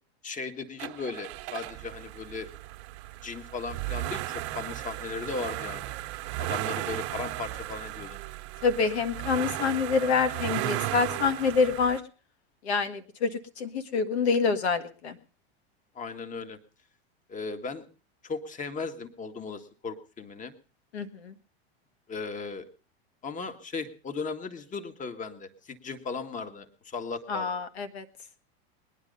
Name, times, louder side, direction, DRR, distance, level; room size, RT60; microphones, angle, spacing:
voice 1, 0.2-2.5 3.2-5.9 6.4-8.2 16.0-16.6 17.3-17.8 18.2-20.5 22.1-22.7 23.2-27.5, left 4 dB, 25° left, 9 dB, 1.8 m, -37 dB
sound 1, 0.8-12.0, right 16 dB, 50° right, 1.0 m, -35 dB
voice 2, 8.6-12.0 12.6-15.2 20.9-21.3 27.3-28.1, left 5 dB, 85° left, 10 dB, 1.7 m, -27 dB
21.0 x 10.0 x 5.4 m, 0.39 s
hypercardioid pair, 115°, 32 cm